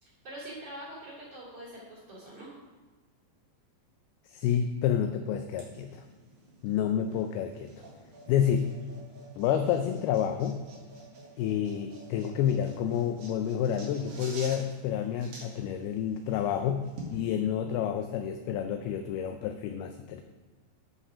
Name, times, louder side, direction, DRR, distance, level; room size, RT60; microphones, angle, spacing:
voice 1, 0.0-2.5, right 1 dB, 40° right, -6 dB, 3.4 m, -44 dB
voice 2, 4.3-6.0 6.6-7.7 8.3-8.7 9.4-10.6 11.4-20.2, left 9 dB, 85° left, 7 dB, 2.2 m, -29 dB
sound 1, 5.5-17.2, right 2 dB, 60° right, 3.6 m, -49 dB
11.5 x 5.5 x 4.9 m, 1.3 s
omnidirectional pair, 5.0 m